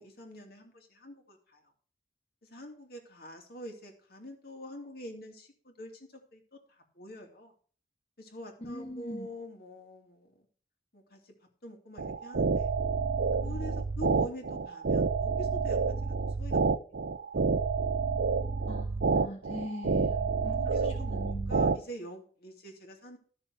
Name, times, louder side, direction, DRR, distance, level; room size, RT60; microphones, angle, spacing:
voice 1, 0.0-1.7 2.4-7.5 8.2-10.5 10.9-11.3 11.6-12.7 13.4-17.0 17.3-17.5 20.1-23.2, equal, 60° left, 3 dB, 2.6 m, -46 dB
voice 2, 8.6-9.3 18.7-21.6, equal, 35° left, 0 dB, 1.5 m, -42 dB
sound 1, 12.0-21.8, right 4 dB, 80° right, 0.6 m, -29 dB
13.0 x 6.8 x 4.8 m, 0.43 s
head